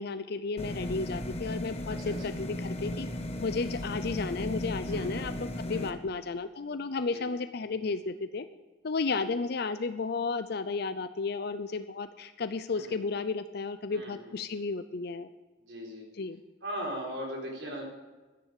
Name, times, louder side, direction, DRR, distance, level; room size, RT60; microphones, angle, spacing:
voice 1, 0.0-3.1 3.4-8.5 8.8-15.3 16.1-16.4, left 4 dB, 55° left, 11 dB, 0.5 m, -33 dB
sound 1, 0.6-5.9, left 1 dB, 35° left, 1.2 m, -36 dB
voice 2, 4.9-5.3 5.7-5.9 7.1-7.3 9.1-9.3 12.7-13.0 13.9-14.6 15.6-16.1 16.6-17.8, equal, 75° right, -1 dB, 4.2 m, -39 dB
13.0 x 9.8 x 6.6 m, 1.2 s
head